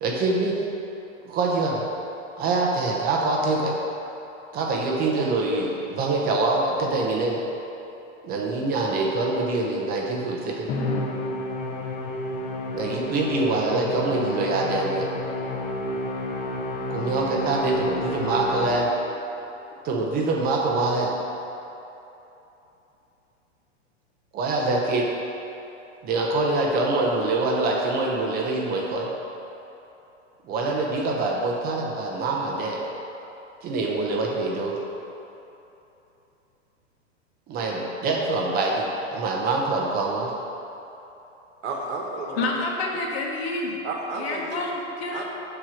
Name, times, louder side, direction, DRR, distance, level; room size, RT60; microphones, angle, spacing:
voice 1, 0.0-0.6 1.2-1.8 2.4-3.7 4.5-7.4 8.2-10.7 12.7-15.1 16.9-18.9 19.8-21.1 24.3-25.1 26.0-29.1 30.5-32.8 33.6-34.8 37.5-40.3, right 2 dB, 25° right, -1 dB, 0.8 m, -25 dB
Musical instrument, 10.7-19.2, left 1 dB, 20° left, 0.6 m, -30 dB
voice 2, 41.6-42.5 43.8-44.6 45.1-45.2, right 3 dB, 65° right, 0 dB, 1.5 m, -32 dB
voice 3, 42.4-43.8 44.1-45.2, left 2 dB, 55° left, -1 dB, 1.4 m, -28 dB
6.6 x 4.4 x 6.2 m, 3.0 s
hypercardioid pair, 145°, 37 cm